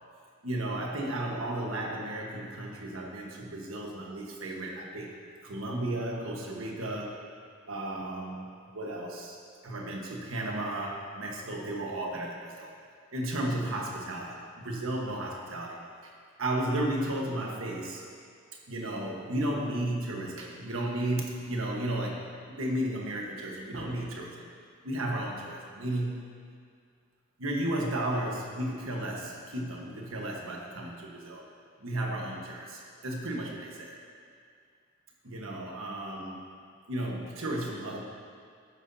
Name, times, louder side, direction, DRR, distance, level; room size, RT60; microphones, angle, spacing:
voice 1, 0.4-5.1 5.4-7.2 7.7-12.7 13.1-16.1 16.4-18.0 18.7-24.5 24.8-26.3 27.4-31.4 31.8-34.0 35.2-36.4 36.9-38.0, right 1 dB, 80° right, -1 dB, 1.4 m, -34 dB
12.0 x 9.5 x 2.8 m, 2.2 s
head